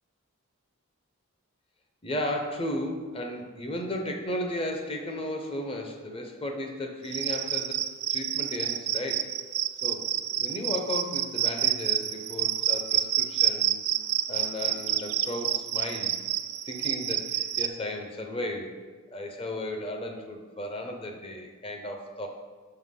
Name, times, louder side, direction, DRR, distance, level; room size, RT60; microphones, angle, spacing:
voice 1, 2.0-7.8 8.1-9.3 9.8-13.8 14.3-16.2 16.7-18.8 19.1-22.3, left 1 dB, 25° left, 3 dB, 0.5 m, -34 dB
Cricket, 7.0-17.7, right 13 dB, 75° right, 0.4 m, -28 dB
5.8 x 5.6 x 3.6 m, 1.4 s
head